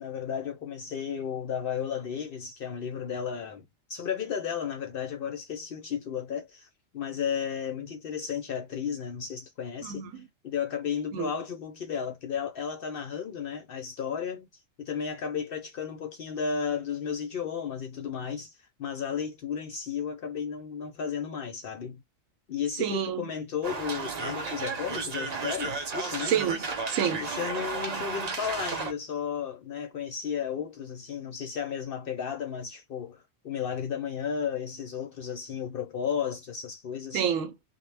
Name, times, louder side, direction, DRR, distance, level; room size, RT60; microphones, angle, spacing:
voice 1, 0.0-10.0 10.4-14.5 14.8-22.0 22.5-26.4 27.2-37.2, left 7 dB, 60° left, 0.6 m, -34 dB
voice 2, 9.8-10.3 11.1-11.3 22.8-23.3 26.3-27.2 37.1-37.5, right 8 dB, 85° right, 1.0 m, -29 dB
sound 1, 23.6-28.9, right 4 dB, 50° right, 0.5 m, -33 dB
2.2 x 2.1 x 3.2 m
omnidirectional pair, 1.3 m